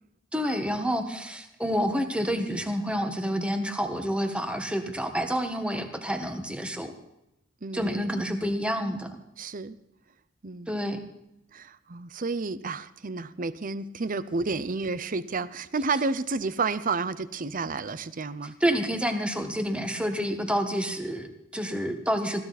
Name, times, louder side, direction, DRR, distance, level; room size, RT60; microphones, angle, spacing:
voice 1, 0.3-6.9 7.7-9.2 10.7-11.0 18.6-22.4, equal, 5° right, 6 dB, 1.5 m, -28 dB
voice 2, 7.6-8.0 9.4-9.8 10.4-10.7 11.5-18.6, right 4 dB, 40° right, 15 dB, 0.7 m, -31 dB
21.0 x 14.5 x 4.2 m, 0.86 s
head